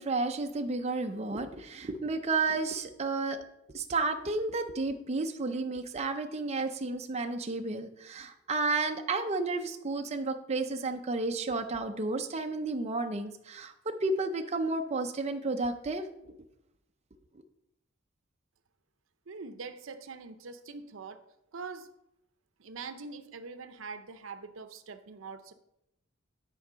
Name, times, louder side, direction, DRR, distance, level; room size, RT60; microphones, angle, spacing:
voice 1, 0.0-3.4 3.7-16.3, right 3 dB, 35° right, 5 dB, 0.5 m, -32 dB
voice 2, 19.3-21.2 21.5-21.9 22.6-25.5, right 4 dB, 75° right, 10 dB, 0.6 m, -43 dB
10.0 x 4.5 x 5.0 m, 0.84 s
head